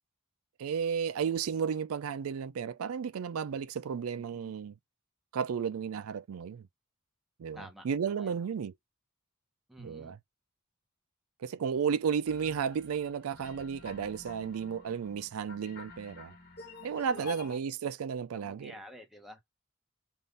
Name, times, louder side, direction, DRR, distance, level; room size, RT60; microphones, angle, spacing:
voice 1, 0.6-4.8 5.3-6.7 7.4-8.7 9.8-10.2 11.4-16.3 16.8-18.7, right 7 dB, 70° right, 0.4 m, -33 dB
voice 2, 4.1-4.5 7.5-8.4 9.7-10.1 17.2-17.5 18.3-19.4, equal, ahead, 1.0 m, -51 dB
sound 1, 12.3-17.6, left 4 dB, 50° left, 1.4 m, -49 dB
3.6 x 2.5 x 3.9 m
head